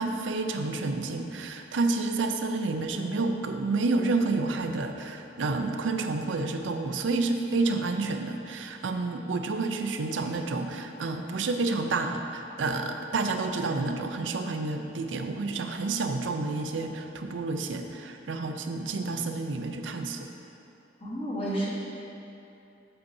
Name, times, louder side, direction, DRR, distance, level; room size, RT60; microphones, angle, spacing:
voice 1, 0.0-20.3, right 3 dB, 85° right, 5 dB, 0.5 m, -29 dB
voice 2, 21.0-21.7, right 1 dB, 30° left, -6 dB, 1.5 m, -30 dB
8.3 x 7.9 x 2.7 m, 2.8 s
head